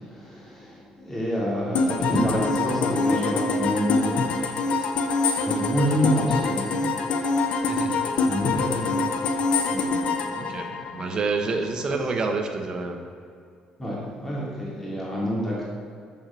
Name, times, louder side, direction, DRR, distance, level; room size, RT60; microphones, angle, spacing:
voice 1, 0.1-4.4 5.4-6.8 7.6-7.7 8.2-11.1 11.4-11.5 11.9-12.0 13.8-15.6, equal, 10° left, -5 dB, 2.8 m, -28 dB
sound 1, 1.7-11.5, left 3 dB, 60° left, 0.9 m, -25 dB
voice 2, 7.7-8.0 10.3-10.7 10.9-13.0, right 4 dB, 35° right, 4 dB, 1.1 m, -28 dB
7.2 x 7.2 x 7.7 m, 2.3 s
cardioid pair, 135°, 2 cm